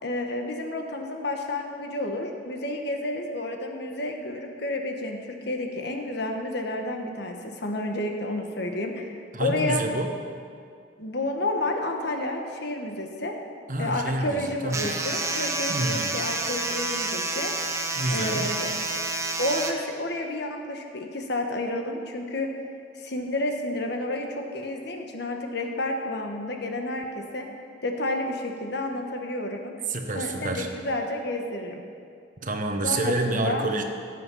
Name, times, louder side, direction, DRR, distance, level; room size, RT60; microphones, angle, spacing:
voice 1, 0.0-9.8 11.0-13.4 13.8-17.7 18.1-18.7 19.4-22.5 23.0-27.4 27.8-29.7 30.1-31.8 32.8-33.6, left 1 dB, 60° left, 3 dB, 1.4 m, -30 dB
voice 2, 9.3-10.1 13.7-15.0 15.7-16.2 17.9-18.5 29.9-30.7 32.4-33.8, right 2 dB, 45° right, 4 dB, 1.1 m, -28 dB
sound 1, 14.7-19.7, right 2 dB, 15° right, 1.0 m, -29 dB
17.5 x 7.8 x 5.5 m, 2.3 s
head